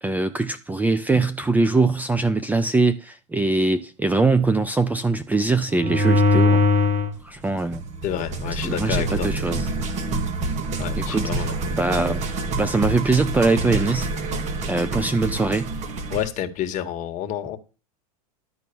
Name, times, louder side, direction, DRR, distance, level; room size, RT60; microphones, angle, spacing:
voice 1, 0.0-6.6 7.2-7.8 8.5-9.7 11.1-11.4 11.7-12.2 12.6-14.1 14.7-15.7, right 3 dB, 10° right, 0.6 m, -22 dB
sound 1, 5.7-7.1 7.7-16.3, equal, 35° right, 1.9 m, -24 dB
voice 2, 8.0-9.3 10.8-11.6 16.1-17.6, left 10 dB, 40° left, 1.6 m, -29 dB
12.0 x 4.5 x 7.0 m
hypercardioid pair, 120°, 19 cm